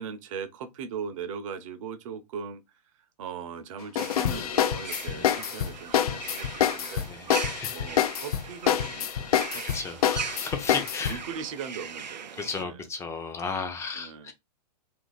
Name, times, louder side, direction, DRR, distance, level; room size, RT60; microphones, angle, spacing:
voice 1, 0.0-2.6 3.2-7.1 7.4-10.0 11.0-12.8 13.9-14.3, right 6 dB, 50° right, 0.7 m, -39 dB
sound 1, 3.9-11.2, left 10 dB, 60° left, 0.4 m, -27 dB
sound 2, 4.0-12.6, right 7 dB, 90° right, 0.4 m, -40 dB
voice 2, 7.1-7.9 9.4-11.2 12.4-14.3, left 4 dB, 15° left, 0.6 m, -35 dB
2.7 x 2.6 x 3.9 m
hypercardioid pair, 120°, 21 cm